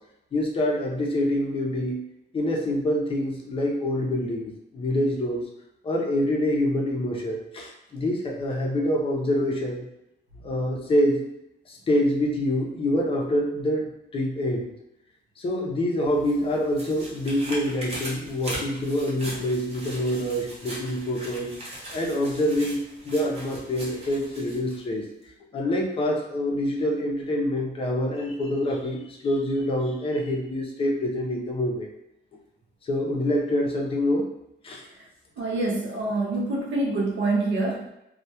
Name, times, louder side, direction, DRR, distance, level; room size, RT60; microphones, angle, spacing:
voice 1, 0.3-2.0 2.3-5.4 5.8-9.8 10.4-11.3 11.7-14.7 15.4-21.5 21.9-22.8 23.0-25.0 25.5-31.9 32.8-34.3 34.6-34.8, left 1 dB, 30° left, 0 dB, 0.4 m, -26 dB
sound 1, 16.1-24.8 25.2-25.3, right 1 dB, 35° right, 0.6 m, -40 dB
voice 2, 35.4-37.9, right 2 dB, 80° right, 0 dB, 0.5 m, -26 dB
2.2 x 2.1 x 2.7 m, 0.84 s
wide cardioid pair, 170°, 19 cm